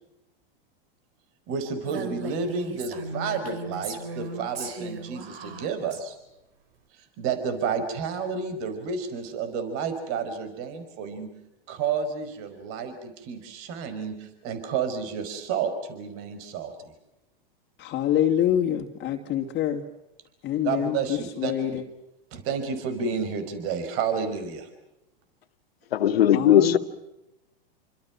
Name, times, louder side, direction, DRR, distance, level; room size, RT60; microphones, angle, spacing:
voice 1, 1.5-6.2 6.9-11.3 11.7-16.9 20.6-21.8 22.3-24.7, right 6 dB, 50° right, 9 dB, 5.1 m, -31 dB
Female speech woman speaking, 1.9-6.0, right 3 dB, 80° right, 4.0 m, -37 dB
voice 2, 17.8-19.8 20.4-21.8 26.3-26.8, left 10 dB, 35° left, 2 dB, 2.6 m, -26 dB
voice 3, 25.9-26.8, left 10 dB, 85° left, 9 dB, 2.1 m, -18 dB
28.0 x 25.5 x 6.0 m, 0.92 s
hypercardioid pair, 115°, 29 cm